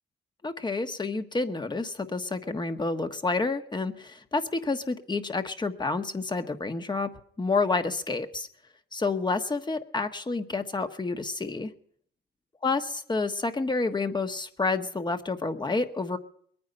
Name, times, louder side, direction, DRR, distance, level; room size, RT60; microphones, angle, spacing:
voice 1, 0.4-7.1 7.4-8.5 8.9-11.7 12.6-16.2, left 3 dB, 20° left, 8 dB, 1.5 m, -29 dB
22.0 x 9.6 x 5.6 m, 0.62 s
cardioid pair, 90°, 20 cm